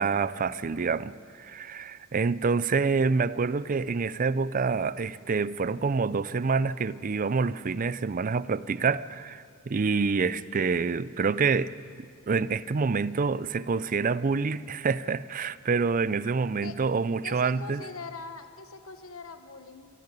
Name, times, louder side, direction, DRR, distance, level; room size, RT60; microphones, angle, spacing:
voice 1, 0.0-11.7 12.0-17.8, right 4 dB, 40° right, 0.5 m, -27 dB
voice 2, 17.2-19.9, left 4 dB, 80° left, 1.3 m, -42 dB
26.0 x 10.5 x 9.8 m
head